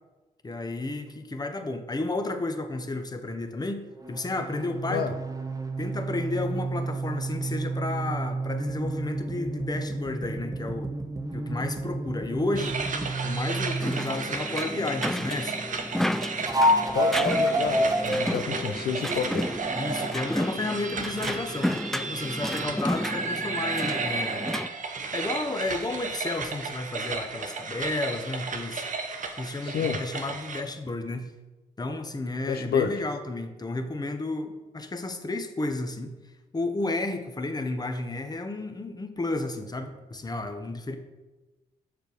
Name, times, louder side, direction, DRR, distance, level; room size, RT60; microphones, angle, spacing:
voice 1, 0.4-5.2 5.8-10.9 11.3-12.8 13.2-15.6 19.7-24.6 25.1-28.8 29.4-31.3 31.8-36.1 36.5-41.0, left 2 dB, 25° left, 7 dB, 0.9 m, -32 dB
sound 1, 4.0-14.2 16.4-20.0, right 1 dB, 20° right, 0.9 m, -29 dB
sound 2, 12.5-30.6, right 4 dB, 50° right, 0.9 m, -34 dB
sound 3, 13.8-24.7, left 1 dB, ahead, 0.3 m, -32 dB
voice 2, 16.9-19.5 29.6-30.0 32.5-32.9, left 8 dB, 70° left, 6 dB, 0.5 m, -29 dB
6.7 x 5.1 x 4.5 m, 1.1 s
supercardioid pair, 60°, 17 cm